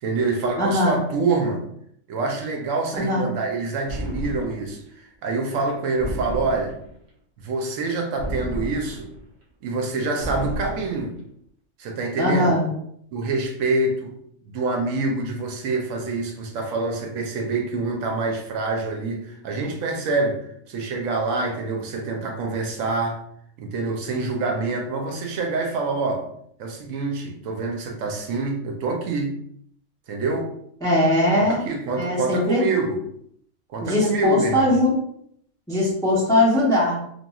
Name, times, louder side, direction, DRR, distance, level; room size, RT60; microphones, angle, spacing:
voice 1, 0.0-1.6 2.1-4.8 5.2-6.7 7.4-9.1 9.6-11.2 11.8-12.6 13.1-14.1 14.4-23.2 23.6-26.3 26.6-29.3 30.1-30.5 31.4-33.0 33.7-34.8, right 3 dB, 75° right, 2 dB, 1.0 m, -26 dB
voice 2, 0.6-1.0 2.9-3.3 12.2-12.7 30.8-31.6 32.0-32.6 33.8-35.0 35.7-37.0, left 1 dB, 5° left, -5 dB, 0.4 m, -20 dB
sound 1, 3.9-4.8 6.0-7.0 8.2-9.2 10.2-11.1, equal, 45° right, 0.6 m, -32 dB
3.0 x 2.5 x 2.3 m, 0.70 s
omnidirectional pair, 1.4 m